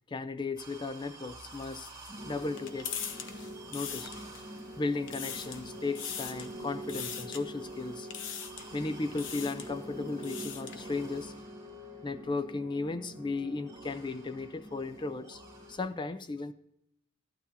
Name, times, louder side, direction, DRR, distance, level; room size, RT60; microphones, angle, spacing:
voice 1, 0.1-1.9 2.2-2.9 3.7-4.1 4.8-8.1 8.7-11.3 12.0-15.4 15.7-16.5, left 3 dB, 25° left, 0.4 m, -35 dB
sound 1, 0.6-15.8, right 1 dB, 20° right, 2.4 m, -45 dB
sound 2, 1.5-4.6 4.9-5.6 5.9-6.5 6.9-7.4 8.1-8.7 9.1-9.7 10.1-10.8, left 7 dB, 65° left, 0.9 m, -41 dB
14.5 x 11.5 x 2.8 m
head